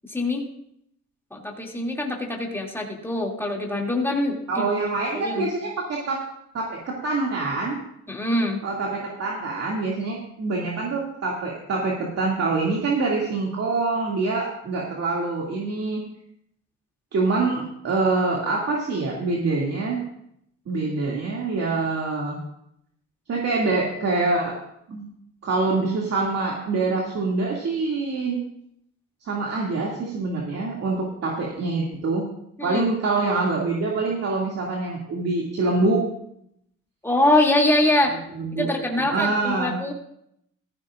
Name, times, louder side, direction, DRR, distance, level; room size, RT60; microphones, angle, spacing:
voice 1, 0.1-0.4 1.3-4.7 5.1-5.5 8.1-8.6 32.6-32.8 37.0-38.2 38.6-39.9, left 1 dB, 10° left, -1 dB, 2.6 m, -23 dB
voice 2, 4.5-6.2 6.5-7.8 8.6-16.0 17.1-20.0 20.7-22.4 23.3-24.5 24.9-25.1 25.4-28.4 29.2-32.2 32.6-36.0 38.3-38.7 39.1-39.8, right 3 dB, 55° right, -3 dB, 2.4 m, -25 dB
15.5 x 14.5 x 2.5 m, 0.74 s
cardioid pair, 90°, 30 cm